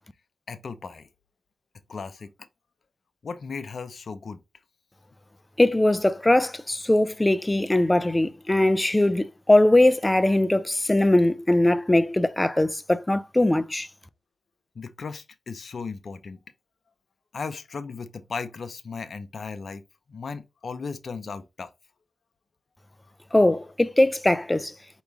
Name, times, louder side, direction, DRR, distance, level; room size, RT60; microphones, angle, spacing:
voice 1, 0.5-1.1 1.9-2.3 3.2-4.4 14.7-16.4 17.3-19.8 20.1-21.7, left 5 dB, 65° left, 0.7 m, -36 dB
voice 2, 5.6-13.9 23.3-24.7, left 1 dB, 20° left, 0.5 m, -21 dB
4.7 x 3.1 x 3.7 m
cardioid pair, 45°, 0 cm